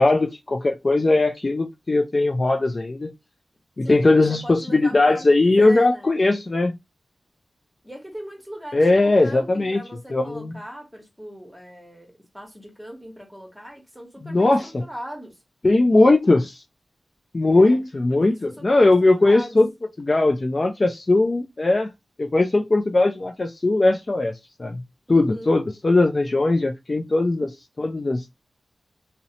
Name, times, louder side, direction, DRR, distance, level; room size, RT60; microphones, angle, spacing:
voice 1, 0.0-3.1 3.8-6.7 8.7-9.8 10.1-10.5 14.2-14.8 15.6-16.6 17.3-19.7 20.0-21.9 22.2-24.3 24.6-24.8 25.1-28.3, left 2 dB, 40° left, 0.3 m, -19 dB
voice 2, 3.8-6.2 7.8-15.4 17.5-17.8 18.2-19.6 25.1-25.6, equal, 5° right, 1.0 m, -40 dB
2.7 x 2.0 x 2.7 m
wide cardioid pair, 90°, 0 cm